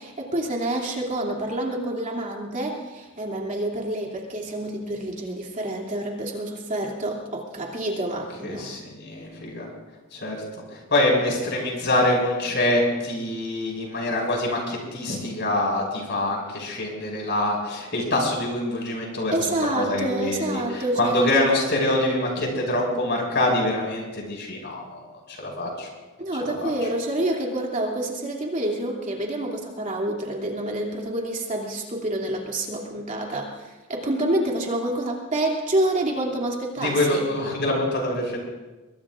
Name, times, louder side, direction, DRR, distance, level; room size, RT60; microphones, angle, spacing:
voice 1, 0.0-8.7 19.3-21.3 26.2-37.2, right 1 dB, 35° right, -2 dB, 2.7 m, -28 dB
voice 2, 8.4-9.7 10.1-25.0 25.3-25.9 26.4-26.7 36.8-38.4, left 1 dB, 55° left, -1 dB, 5.9 m, -25 dB
24.5 x 22.5 x 2.5 m, 1.2 s
head